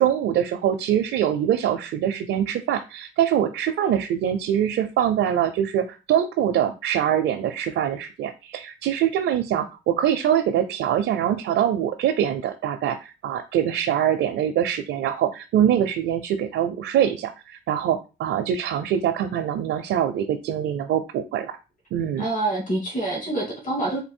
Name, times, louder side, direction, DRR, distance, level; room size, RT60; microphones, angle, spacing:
voice 1, 0.0-21.6 21.9-22.3, right 10 dB, 80° right, 5 dB, 0.6 m, -23 dB
voice 2, 22.2-24.0, right 2 dB, 40° left, -2 dB, 2.2 m, -26 dB
4.0 x 2.7 x 4.4 m, 0.30 s
cardioid pair, 90°, 20 cm